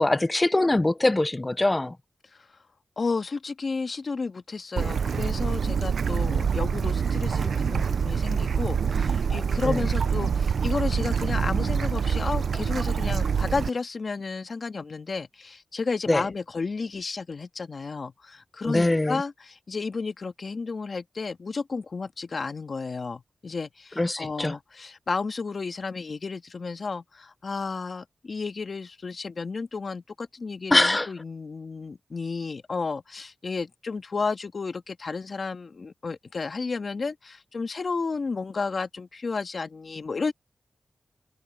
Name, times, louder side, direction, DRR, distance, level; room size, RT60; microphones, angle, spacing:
voice 1, 0.0-2.0 9.6-9.8 16.1-16.2 18.6-19.2 24.0-24.5 30.7-31.1, left 2 dB, 30° left, 1.1 m, -23 dB
voice 2, 3.0-40.3, left 4 dB, 70° left, 2.1 m, -32 dB
Bird / Stream, 4.8-13.7, right 6 dB, 90° right, 0.8 m, -25 dB
cardioid pair, 45°, 0 cm